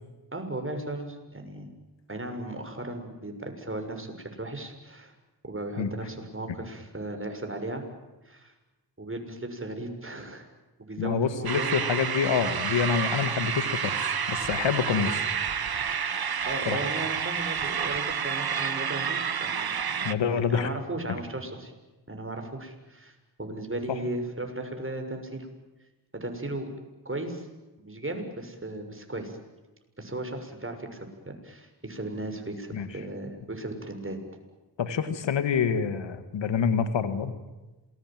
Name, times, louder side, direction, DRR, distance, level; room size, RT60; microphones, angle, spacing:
voice 1, 0.3-1.7 2.1-5.1 5.4-7.8 8.2-8.5 9.0-10.4 10.9-11.7 16.4-19.9 20.5-21.7 22.1-25.5 26.1-26.7 27.0-27.5 27.8-29.4 30.0-34.2, right 2 dB, 30° right, 5 dB, 6.9 m, -36 dB
voice 2, 11.0-15.2 16.7-16.8 20.0-20.7 23.9-24.0 32.7-32.9 34.8-37.3, left 6 dB, 90° left, 11 dB, 1.9 m, -27 dB
sound 1, 11.5-20.1, right 7 dB, 55° right, 1.4 m, -29 dB
27.5 x 21.5 x 9.2 m, 1.1 s
cardioid pair, 40°, 43 cm